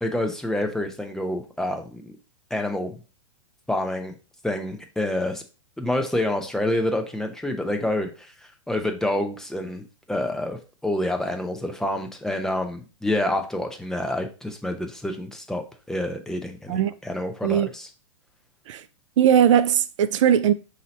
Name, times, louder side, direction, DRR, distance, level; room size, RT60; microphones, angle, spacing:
voice 1, 0.0-2.1 2.5-3.0 3.7-4.1 4.4-5.4 5.8-17.9, left 1 dB, 5° left, 0.6 m, -28 dB
voice 2, 19.2-20.5, right 9 dB, 75° right, 0.4 m, -19 dB
5.5 x 2.8 x 3.0 m
hypercardioid pair, 130°, 16 cm